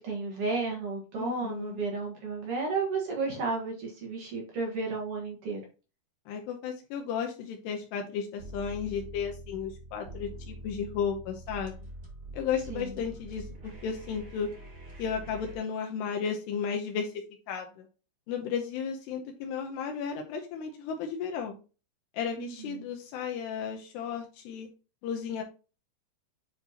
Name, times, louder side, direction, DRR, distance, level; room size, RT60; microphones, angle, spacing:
voice 1, 0.0-5.6 12.7-12.9 22.3-22.8, right 4 dB, 75° right, 0 dB, 1.3 m, -33 dB
voice 2, 1.2-1.8 6.3-11.7 12.3-14.5 15.0-17.2 17.5-17.9 18.3-21.6 22.1-24.7 25.0-25.4, left 7 dB, 80° left, 3 dB, 2.7 m, -34 dB
sound 1, 8.4-15.6, right 1 dB, 45° right, 1.5 m, -45 dB
8.2 x 4.3 x 2.8 m, 0.33 s
omnidirectional pair, 5.1 m